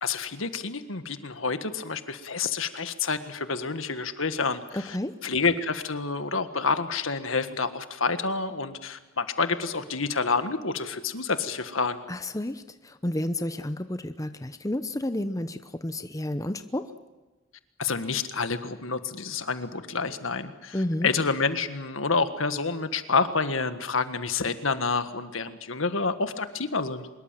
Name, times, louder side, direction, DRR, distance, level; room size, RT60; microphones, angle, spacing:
voice 1, 0.0-5.0 5.2-12.0 17.8-20.8 21.0-27.1, left 4 dB, 75° left, 10 dB, 1.7 m, -28 dB
voice 2, 4.7-5.1 12.1-16.9 20.7-21.1, left 1 dB, 15° left, 10 dB, 0.8 m, -31 dB
24.5 x 21.5 x 7.6 m, 1.2 s
head